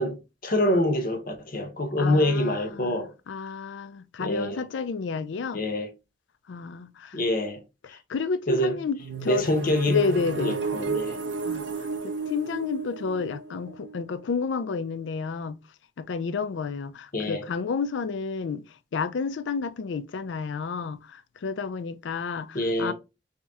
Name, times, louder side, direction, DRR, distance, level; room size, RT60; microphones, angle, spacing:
voice 1, 0.0-3.1 4.2-4.7 5.5-5.9 7.1-7.6 7.9-8.0 8.5-8.8 9.3-11.2 17.1-17.5 22.5-22.9, left 1 dB, 50° left, 0.8 m, -26 dB
voice 2, 2.0-3.0 3.3-5.6 6.5-7.2 8.1-9.5 9.9-10.6 11.5-11.7 12.0-15.6 16.0-18.6 18.9-22.9, left 5 dB, 75° left, 0.4 m, -30 dB
sound 1, 9.0-14.8, right 4 dB, 70° right, 0.5 m, -33 dB
3.1 x 2.9 x 3.4 m
head